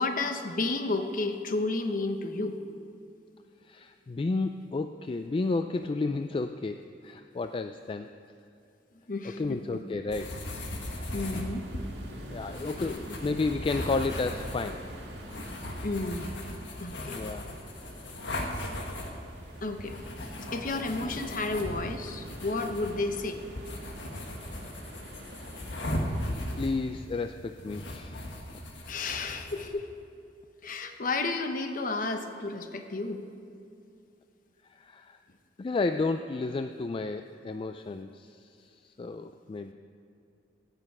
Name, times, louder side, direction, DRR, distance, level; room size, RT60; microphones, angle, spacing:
voice 1, 0.0-2.6 9.1-9.6 11.1-11.9 12.8-13.2 15.8-16.3 16.8-17.2 19.6-20.0 20.5-23.4 28.9-29.9 30.6-33.2, left 3 dB, 50° left, 6 dB, 0.9 m, -32 dB
voice 2, 3.6-8.1 9.4-10.3 12.3-14.8 17.1-17.5 21.0-21.2 25.6-25.7 26.6-28.3 34.7-35.2 35.6-39.7, left 3 dB, 30° left, 8 dB, 0.3 m, -32 dB
sound 1, 10.1-29.7, left 1 dB, 85° left, 1.6 m, -38 dB
sound 2, 10.8-26.7, equal, 85° right, 1.9 m, -46 dB
17.0 x 6.8 x 6.0 m, 2.6 s
head